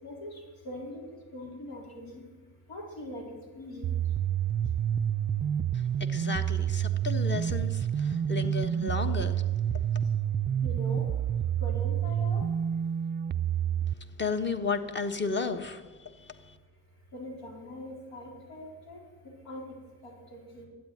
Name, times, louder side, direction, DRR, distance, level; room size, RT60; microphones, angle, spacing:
voice 1, 0.0-2.2 2.7-3.2 3.5-3.9 10.6-11.0 11.6-12.4 17.1-19.0 19.4-19.6 20.0-20.7, left 1 dB, 80° left, -1 dB, 4.4 m, -42 dB
sound 1, 3.8-13.9, right 9 dB, 30° right, 0.4 m, -28 dB
voice 2, 5.7-9.5 9.7-10.0 14.2-16.6, left 4 dB, 30° left, 8 dB, 1.3 m, -34 dB
12.5 x 9.3 x 9.3 m, 1.4 s
cardioid pair, 100°, 37 cm